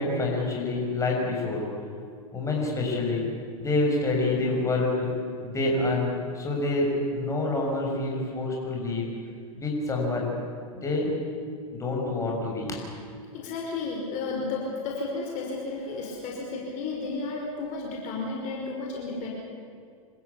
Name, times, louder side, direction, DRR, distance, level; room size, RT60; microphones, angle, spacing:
voice 1, 0.0-1.6 2.3-3.3 3.6-5.1 5.4-9.0 9.5-10.3 10.7-11.1 11.7-12.8, left 2 dB, 15° left, -1 dB, 7.0 m, -27 dB
voice 2, 13.3-19.3, left 3 dB, 45° left, -1 dB, 5.2 m, -33 dB
27.0 x 15.0 x 8.5 m, 2.2 s
hypercardioid pair, 115°, 18 cm